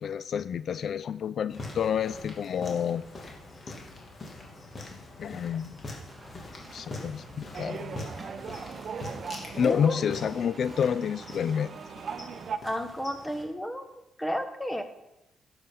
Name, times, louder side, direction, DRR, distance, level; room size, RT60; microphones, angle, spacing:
voice 1, 0.0-3.0 5.2-5.8 6.7-8.0 9.6-11.8, left 8 dB, 60° left, 15 dB, 0.3 m, -29 dB
sound 1, 1.5-13.4, left 2 dB, 35° left, 3.0 m, -44 dB
sound 2, 6.1-12.0, right 2 dB, 15° right, 2.2 m, -51 dB
sound 3, 7.5-12.6, right 6 dB, 50° right, 0.8 m, -39 dB
voice 2, 9.5-10.0 12.6-13.9 14.2-14.8, equal, 5° left, 7 dB, 1.3 m, -32 dB
12.0 x 7.7 x 5.6 m, 0.94 s
cardioid pair, 90°, 0 cm